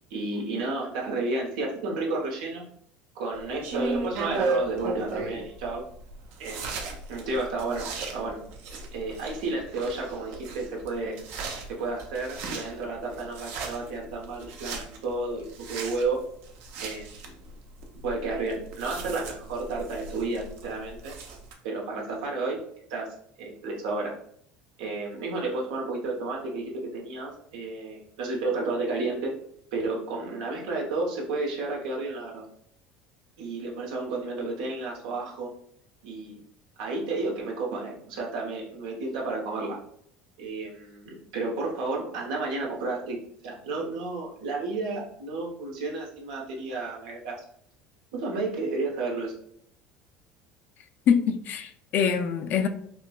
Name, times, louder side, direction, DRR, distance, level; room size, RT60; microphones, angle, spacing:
voice 1, 0.1-2.7 3.1-5.8 6.4-8.4 8.9-11.2 11.7-16.2 16.8-17.4 18.0-21.1 21.6-22.6 22.9-24.1 24.8-29.3 29.7-32.5 33.4-35.5 36.0-36.4 36.8-39.8 40.4-43.2 43.4-47.4 48.1-49.3, right 3 dB, 85° right, 0.9 m, -32 dB
sound 1, 3.3-21.5, right 3 dB, 65° right, 0.6 m, -36 dB
voice 2, 51.1-52.7, left 7 dB, 50° left, 0.4 m, -24 dB
4.6 x 2.1 x 2.3 m
supercardioid pair, 110°, 4 cm